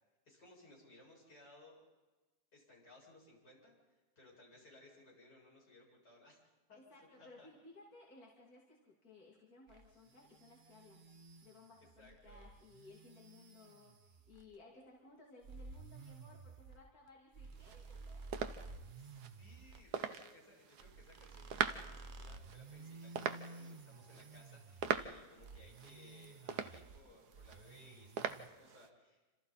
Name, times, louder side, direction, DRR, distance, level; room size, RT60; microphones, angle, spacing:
voice 1, 0.2-1.8 2.5-6.4 6.7-7.5 12.0-12.4 19.0-29.2, left 2 dB, 90° left, -4 dB, 8.7 m, -62 dB
voice 2, 6.7-11.1 11.4-18.7, left 2 dB, 60° left, -3 dB, 3.2 m, -60 dB
sound 1, 9.7-14.6 15.4-19.9 20.8-25.1 25.4-27.0 27.3-28.5, right 3 dB, 35° right, 0.9 m, -53 dB
sound 2, 17.6-28.9, right 8 dB, 70° right, 1.5 m, -43 dB
28.5 x 26.5 x 4.2 m, 1.2 s
omnidirectional pair, 1.8 m